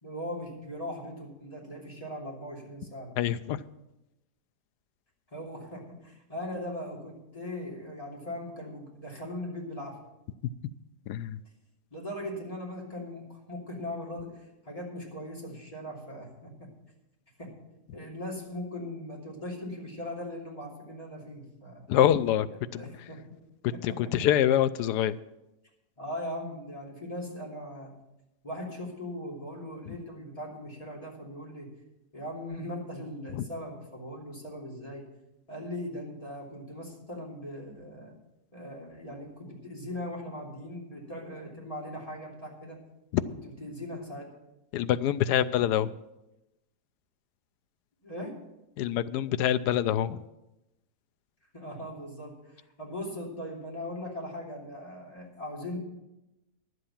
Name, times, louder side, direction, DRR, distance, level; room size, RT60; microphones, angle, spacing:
voice 1, 0.0-3.2 5.3-10.0 11.9-16.7 17.4-17.5 17.9-21.9 22.5-23.4 23.7-24.3 26.0-27.9 28.4-31.7 32.1-35.1 35.5-38.1 38.5-42.8 43.3-44.3 48.0-48.4 51.5-55.8, left 1 dB, 20° left, -3 dB, 3.0 m, -39 dB
voice 2, 3.2-3.6 11.1-11.4 21.9-22.5 22.7-22.8 23.8-25.2 29.9-30.0 33.3-33.4 43.1-43.2 44.7-45.9 48.8-50.2, left 11 dB, 90° left, 15 dB, 1.2 m, -25 dB
11.5 x 8.0 x 7.1 m, 0.94 s
omnidirectional pair, 1.7 m